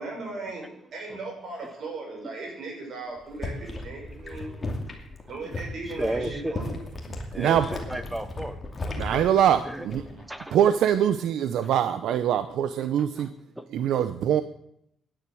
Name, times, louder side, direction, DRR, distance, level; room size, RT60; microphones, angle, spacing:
voice 1, 0.0-4.5 5.3-6.7, right 3 dB, 45° right, 0 dB, 6.4 m, -37 dB
sound 1, 3.2-10.3 10.6-11.0, left 2 dB, 20° left, 2.5 m, -36 dB
voice 2, 5.9-6.6 7.3-9.3 9.6-9.9 10.2-10.6 11.6-11.7 12.8-13.7, right 1 dB, 5° right, 11 dB, 0.9 m, -35 dB
voice 3, 9.0-10.0 10.5-13.3 13.7-14.4, right 10 dB, 70° right, 11 dB, 0.7 m, -23 dB
15.5 x 10.5 x 6.3 m, 0.75 s
cardioid pair, 170°, 0 cm